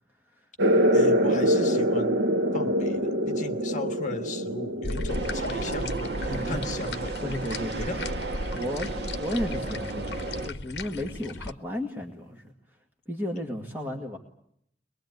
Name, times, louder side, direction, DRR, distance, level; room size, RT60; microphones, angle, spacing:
sound 1, 0.6-7.7, equal, 85° right, 1.1 m, -25 dB
voice 1, 0.9-2.2 2.5-7.1 7.7-8.0 13.6-14.0, left 2 dB, 45° left, 6 dB, 1.6 m, -37 dB
sound 2, 4.8-11.5, left 3 dB, 70° left, 1.0 m, -37 dB
sound 3, 5.1-10.5, right 2 dB, 70° right, 1.6 m, -33 dB
voice 2, 6.1-6.7 7.2-7.9 8.5-12.8 13.1-14.2, left 1 dB, 10° right, 0 dB, 2.0 m, -34 dB
23.5 x 21.5 x 9.5 m, 0.72 s
head